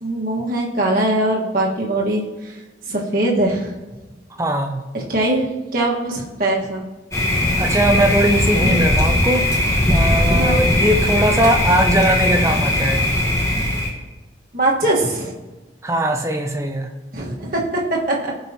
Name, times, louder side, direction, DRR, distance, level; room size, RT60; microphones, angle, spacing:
voice 1, 0.0-2.2 2.9-3.7 4.9-5.5 5.7-6.8 8.6-8.8 10.3-10.6 14.5-15.3 17.1-18.3, right 1 dB, 50° right, -3 dB, 1.5 m, -21 dB
voice 2, 4.4-4.8 7.6-13.1 15.8-16.9, right 1 dB, 15° right, 4 dB, 0.6 m, -20 dB
Thunder, 7.1-13.9, left 1 dB, 15° left, 1.3 m, -19 dB
16.5 x 5.5 x 2.9 m, 1.2 s
head